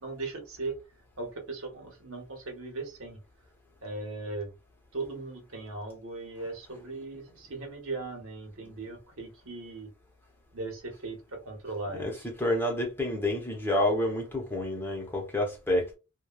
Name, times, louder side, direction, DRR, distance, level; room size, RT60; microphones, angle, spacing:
voice 1, 0.0-0.7 1.2-3.2 3.8-4.5 4.9-9.9 10.5-12.3, right 3 dB, 70° right, 1.1 m, -38 dB
voice 2, 12.0-15.9, left 1 dB, 10° left, 0.8 m, -29 dB
3.1 x 2.3 x 2.3 m
head